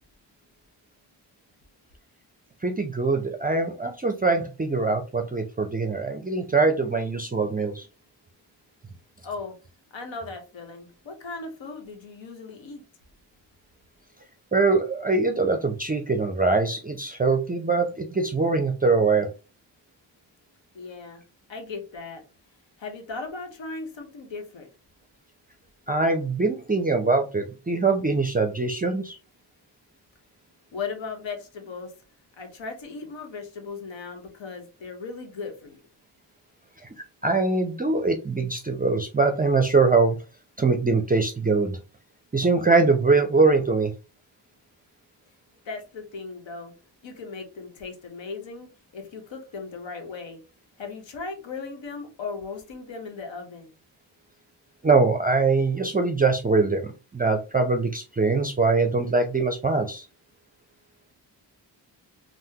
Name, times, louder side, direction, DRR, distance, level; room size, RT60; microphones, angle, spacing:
voice 1, 2.6-7.9 14.5-19.3 25.9-29.2 37.2-40.2 40.6-41.8 42.3-43.9 54.8-60.0, right 3 dB, 20° right, 5 dB, 0.4 m, -23 dB
voice 2, 9.2-9.5 9.9-12.8 20.7-21.2 21.5-22.2 22.8-24.7 30.7-31.9 32.4-35.8 45.6-46.7 47.0-50.4 50.8-53.7, left 4 dB, 85° left, 4 dB, 0.9 m, -37 dB
3.5 x 2.0 x 2.7 m, 0.31 s
cardioid pair, 75°, 44 cm